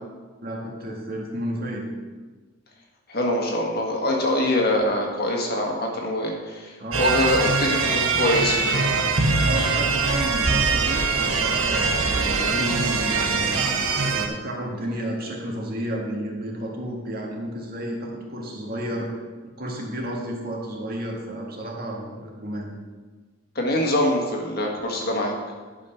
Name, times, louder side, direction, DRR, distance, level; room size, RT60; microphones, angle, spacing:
voice 1, 0.4-1.9 6.8-7.1 9.4-13.7 14.1-19.1 19.4-22.7, right 1 dB, 45° right, -2 dB, 1.9 m, -31 dB
voice 2, 3.1-8.6 23.5-25.3, left 1 dB, 45° left, 0 dB, 1.7 m, -24 dB
sound 1, 6.9-14.3, right 4 dB, 75° right, 1.0 m, -22 dB
11.0 x 5.6 x 5.8 m, 1.4 s
head